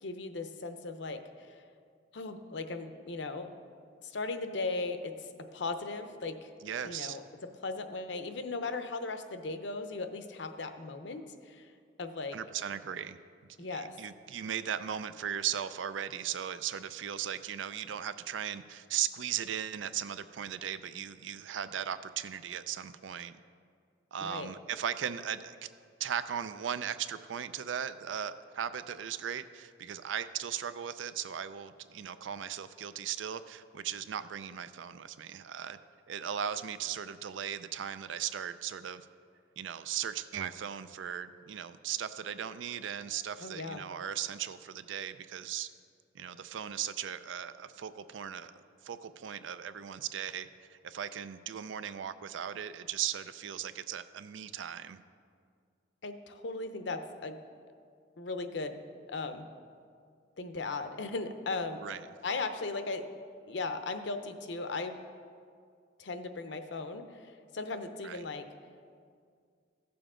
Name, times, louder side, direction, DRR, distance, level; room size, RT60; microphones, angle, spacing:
voice 1, 0.0-1.2 2.1-3.5 4.0-5.1 5.5-6.5 6.8-11.7 12.0-12.4 13.6-14.0 24.2-24.5 43.4-43.9 56.0-57.4 58.2-58.8 59.1-59.5 60.4-61.8 62.2-63.1 63.5-65.0 66.0-68.5, left 3 dB, 70° left, 8 dB, 0.7 m, -37 dB
voice 2, 6.6-7.2 12.3-23.4 24.1-25.6 26.0-35.8 36.1-39.1 39.6-45.7 46.1-55.0 61.8-62.0 68.0-68.2, right 9 dB, 85° right, 13 dB, 0.4 m, -37 dB
15.5 x 7.0 x 3.7 m, 2.2 s
head